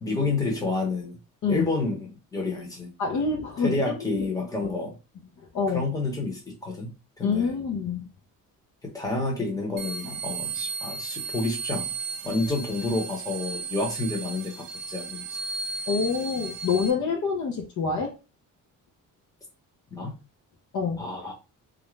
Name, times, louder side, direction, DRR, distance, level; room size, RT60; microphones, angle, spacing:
voice 1, 0.0-1.2 1.5-2.9 3.6-4.9 5.7-6.9 7.2-7.5 8.8-11.9 12.2-14.5 14.9-15.3 19.9-20.2 21.0-21.3, left 2 dB, 10° left, 0.8 m, -29 dB
voice 2, 3.0-4.2 4.6-4.7 5.5-5.9 7.2-8.1 15.9-18.1 20.7-21.0, left 5 dB, 60° left, 0.6 m, -27 dB
sound 1, 9.8-16.9, right 4 dB, 85° right, 0.6 m, -34 dB
2.4 x 2.1 x 3.1 m
cardioid pair, 155°, 34 cm